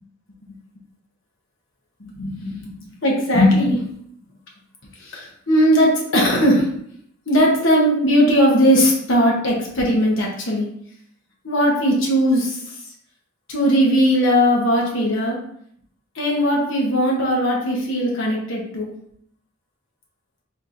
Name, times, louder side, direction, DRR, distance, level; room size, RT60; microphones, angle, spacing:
voice 1, 2.0-2.7 3.0-3.8 5.0-6.7 7.3-10.7 11.4-12.6 13.5-15.4 16.1-18.9, equal, 65° left, -2 dB, 1.0 m, -18 dB
4.3 x 3.6 x 2.5 m, 0.68 s
head